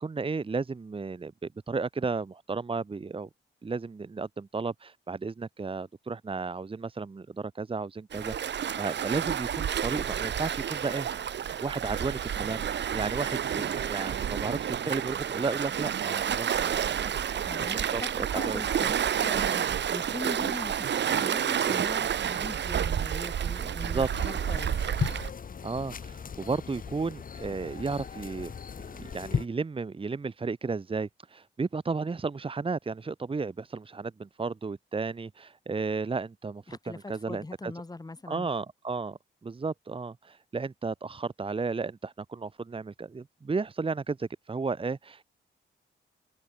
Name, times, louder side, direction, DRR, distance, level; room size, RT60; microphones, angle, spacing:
voice 1, 0.0-3.3 3.6-11.1 11.6-17.2 17.5-18.6 23.8-24.1 25.6-28.5 29.0-37.7 38.3-45.2, right 4 dB, 25° right, 1.4 m, -33 dB
Waves surf, 8.1-25.3, right 9 dB, 60° right, 1.5 m, -30 dB
voice 2, 17.4-24.7 36.7-38.5, left 2 dB, 20° left, 5.4 m, -41 dB
sound 1, 24.1-29.5, left 6 dB, 45° left, 1.8 m, -37 dB
open air
cardioid pair, 115°, 20 cm